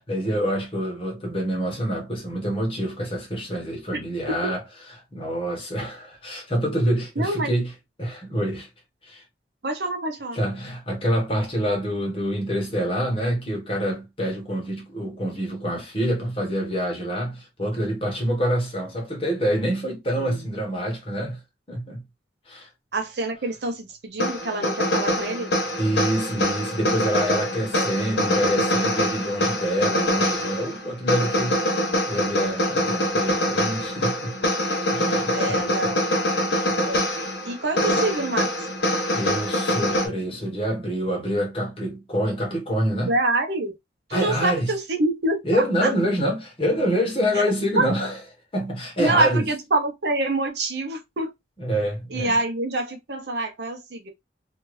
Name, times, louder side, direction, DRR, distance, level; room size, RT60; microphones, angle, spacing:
voice 1, 0.0-4.6 5.1-7.7 8.0-8.7 9.0-9.2 10.3-21.4 21.7-22.0 22.5-22.7 25.8-34.4 34.9-36.0 37.1-37.2 39.1-43.1 44.1-44.7 45.4-48.2 48.5-49.4 51.6-52.4, equal, 30° left, 1.2 m, -26 dB
voice 2, 7.2-7.6 9.6-10.4 20.2-20.4 22.9-25.5 27.7-28.0 31.6-32.0 35.3-36.1 36.8-37.1 37.4-38.5 43.1-43.8 44.1-45.9 47.3-47.4 47.8-47.9 49.0-51.3 52.1-54.1, right 2 dB, 70° right, 0.8 m, -26 dB
sound 1, 24.2-40.1, left 1 dB, 70° left, 1.0 m, -24 dB
2.7 x 2.6 x 3.1 m
head